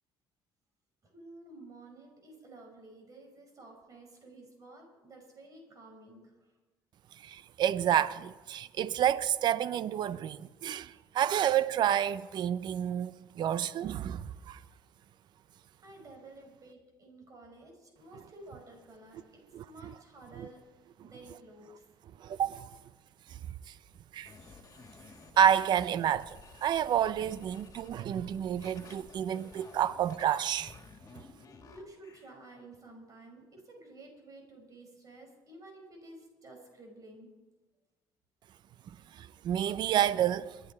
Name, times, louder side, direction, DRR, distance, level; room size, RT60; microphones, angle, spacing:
voice 1, 1.0-6.3 15.8-20.6 21.0-21.8 31.7-37.3, right 2 dB, 45° right, 5.3 m, -52 dB
voice 2, 7.2-14.6 19.5-19.9 20.4-20.5 22.2-22.7 23.3-23.4 23.7-23.8 24.1-24.3 25.4-30.8 39.1-40.6, right 10 dB, 60° right, 0.6 m, -29 dB
sound 1, 24.2-32.3, left 4 dB, 40° left, 2.5 m, -53 dB
23.5 x 10.0 x 4.3 m
supercardioid pair, 80°, 8 cm